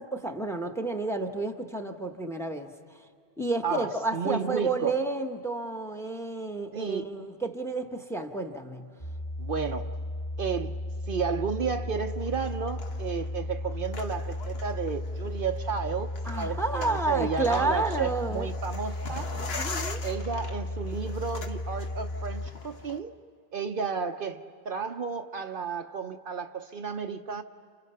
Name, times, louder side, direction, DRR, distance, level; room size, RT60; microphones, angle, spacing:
voice 1, 0.0-3.0 3.4-8.9 16.2-18.5 19.3-20.0, right 3 dB, 5° left, 1.1 m, -31 dB
voice 2, 3.6-5.0 6.7-7.1 9.4-10.0 10.4-10.8 11.1-19.3 20.0-23.1 23.5-27.4, right 6 dB, 60° right, 0.9 m, -32 dB
sound 1, 9.0-22.5, left 1 dB, 40° left, 1.8 m, -35 dB
sound 2, 12.1-23.0, left 3 dB, 75° left, 1.6 m, -43 dB
29.5 x 29.5 x 5.7 m
omnidirectional pair, 1.1 m